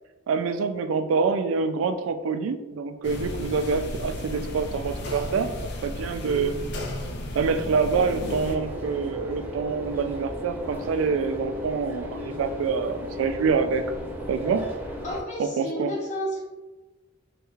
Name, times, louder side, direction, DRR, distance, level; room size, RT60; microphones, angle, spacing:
voice 1, 0.3-5.5 5.8-6.5 7.4-13.8 14.3-14.6 15.4-15.9, right 5 dB, 85° right, 10 dB, 0.3 m, -26 dB
sound 1, 3.0-8.6, left 1 dB, 55° left, 0.4 m, -34 dB
sound 2, 8.2-15.2, equal, 10° right, 0.4 m, -36 dB
voice 2, 15.0-16.4, equal, 40° left, -4 dB, 0.9 m, -31 dB
3.2 x 3.1 x 2.3 m, 1.2 s
head